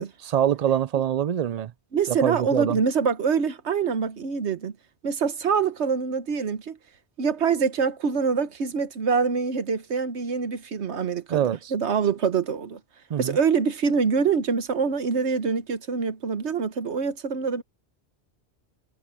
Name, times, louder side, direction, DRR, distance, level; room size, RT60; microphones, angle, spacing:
voice 1, 0.0-1.7 2.1-2.8 11.3-11.7 13.1-13.4, right 10 dB, 55° right, 0.5 m, -25 dB
voice 2, 1.9-4.7 5.0-6.8 7.2-12.8 13.2-17.6, right 5 dB, 80° right, 1.4 m, -25 dB
omnidirectional pair, 1.1 m